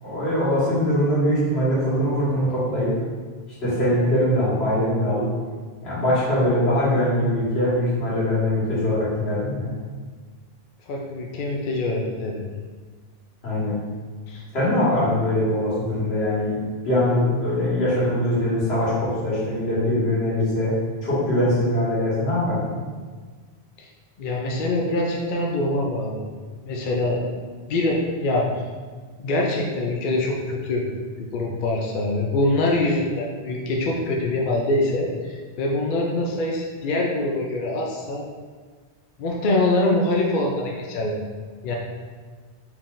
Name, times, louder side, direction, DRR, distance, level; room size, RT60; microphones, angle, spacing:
voice 1, 0.0-2.9 3.6-5.3 5.8-9.7 13.4-13.8 14.5-16.6 16.8-20.7 21.0-22.7, left 1 dB, 80° left, -9 dB, 1.8 m, -22 dB
voice 2, 10.9-12.4 14.3-14.4 23.8-23.9 24.2-26.3 26.6-27.2 27.7-28.5 29.2-30.8 31.2-38.2 39.2-41.2 41.6-41.7, left 2 dB, 60° left, -1 dB, 0.6 m, -24 dB
4.4 x 3.6 x 2.5 m, 1.5 s
omnidirectional pair, 1.1 m